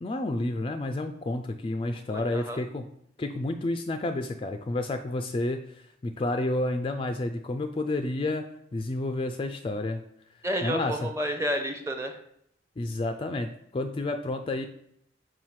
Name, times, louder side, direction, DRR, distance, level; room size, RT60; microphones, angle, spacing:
voice 1, 0.0-2.8 3.2-8.5 8.7-10.0 10.6-11.1 12.8-14.6, left 2 dB, 25° left, 7 dB, 0.3 m, -30 dB
voice 2, 2.1-2.6 10.4-12.2, equal, 15° right, 5 dB, 0.7 m, -30 dB
5.7 x 4.9 x 4.6 m, 0.72 s
head